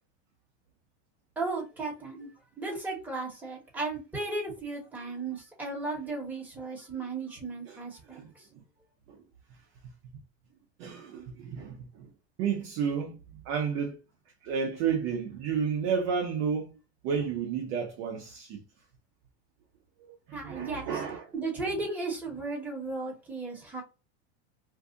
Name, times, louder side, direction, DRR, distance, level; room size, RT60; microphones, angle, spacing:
voice 1, 1.4-2.3 2.6-8.2 20.3-20.9 21.3-23.8, right 3 dB, 5° right, 1.3 m, -35 dB
voice 2, 8.1-8.6 9.1-9.2 10.8-12.1 12.4-14.0 14.4-16.7 17.0-18.6 20.0-21.3, right 6 dB, 40° right, 0.6 m, -32 dB
2.6 x 2.3 x 3.7 m
supercardioid pair, 155°, 32 cm